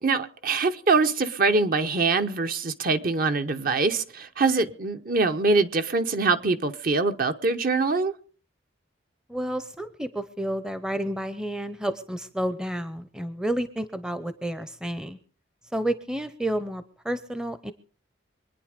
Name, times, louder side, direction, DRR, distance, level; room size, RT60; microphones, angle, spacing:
voice 1, 0.0-8.1, right 3 dB, 45° right, 1.0 m, -24 dB
voice 2, 9.3-15.2 15.7-17.7, right 1 dB, 5° right, 0.7 m, -30 dB
24.5 x 9.7 x 5.1 m
head